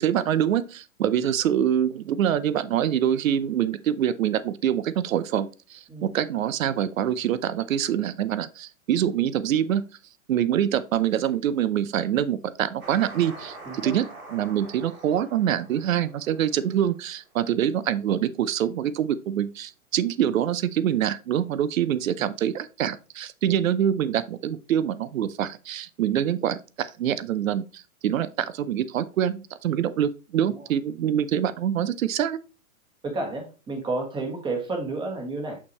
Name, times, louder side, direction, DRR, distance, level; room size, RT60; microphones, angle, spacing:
voice 1, 0.0-9.8 10.3-14.1 14.3-32.4, right 10 dB, 70° right, 0.8 m, -25 dB
sound 1, 12.8-17.1, right 2 dB, 90° right, 3.1 m, -44 dB
voice 2, 13.6-13.9 22.2-22.3 30.4-30.7 33.0-35.6, right 3 dB, 10° right, 1.4 m, -31 dB
6.5 x 5.8 x 3.0 m
hypercardioid pair, 155°, 41 cm